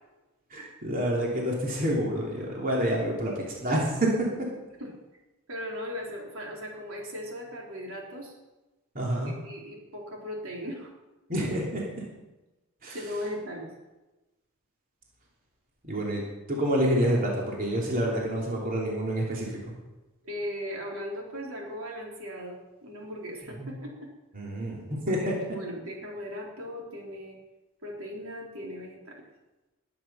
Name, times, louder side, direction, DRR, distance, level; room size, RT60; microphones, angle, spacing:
voice 1, 0.5-4.5 8.9-9.3 11.3-12.0 12.8-13.0 15.8-19.7 23.6-23.7 24.3-25.3, right 1 dB, 40° right, -3 dB, 3.1 m, -28 dB
voice 2, 5.5-8.3 9.2-10.9 12.9-13.7 20.2-24.1 25.1-27.4 27.8-29.3, equal, 75° right, -1 dB, 3.7 m, -38 dB
20.0 x 9.7 x 5.7 m, 1.1 s
head